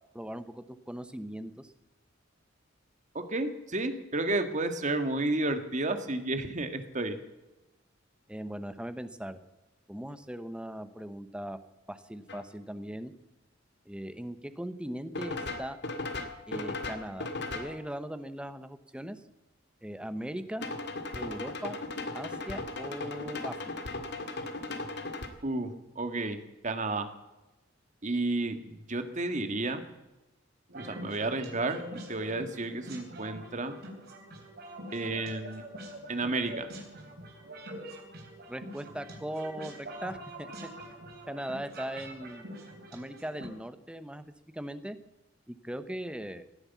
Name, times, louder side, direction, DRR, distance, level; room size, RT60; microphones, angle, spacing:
voice 1, 0.1-1.7 8.3-9.4 9.9-11.6 11.9-13.1 13.9-15.8 16.5-19.2 19.8-20.7 21.1-21.8 22.1-23.7 38.5-40.7 41.3-42.4 42.9-44.2 44.5-45.0 45.5-46.5, right 1 dB, 5° right, 11 dB, 0.9 m, -39 dB
voice 2, 3.1-7.2 25.4-26.4 26.6-27.1 28.0-29.8 30.7-33.8 34.9-35.6 36.1-36.7, right 2 dB, 40° right, 8 dB, 1.7 m, -31 dB
sound 1, 12.3-12.4 15.1-17.8 20.6-25.3, left 2 dB, 60° left, 2.0 m, -37 dB
sound 2, 30.7-43.4, right 1 dB, 55° right, 3.9 m, -45 dB
18.0 x 9.7 x 8.3 m, 1.0 s
head